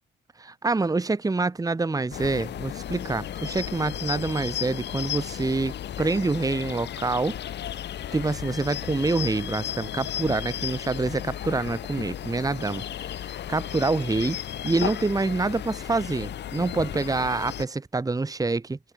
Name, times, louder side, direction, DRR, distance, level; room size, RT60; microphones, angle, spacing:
voice 1, 0.4-7.4 8.1-13.1 13.5-18.8, right 3 dB, 20° right, 1.5 m, -26 dB
sound 1, 2.1-17.7, left 10 dB, 60° left, 1.1 m, -34 dB
cardioid pair, 90°, 20 cm